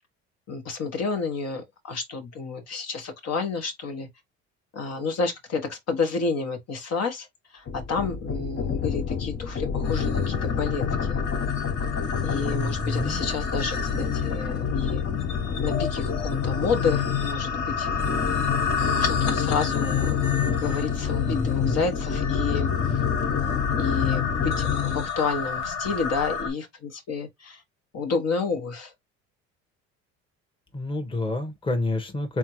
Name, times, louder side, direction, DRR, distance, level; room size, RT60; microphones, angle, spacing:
voice 1, 0.5-4.1 4.7-7.3 7.5-11.2 12.2-15.1 15.6-17.9 18.8-22.7 23.3-27.6 27.9-28.9, left 4 dB, 55° left, 1.4 m, -30 dB
sound 1, 7.7-25.1, left 7 dB, 40° left, 0.8 m, -27 dB
sound 2, 9.8-26.5, left 5 dB, 75° left, 1.1 m, -32 dB
voice 2, 12.4-13.2 21.2-21.8 30.7-32.4, left 2 dB, 15° left, 1.2 m, -29 dB
3.5 x 3.5 x 3.1 m
supercardioid pair, 80°, 30 cm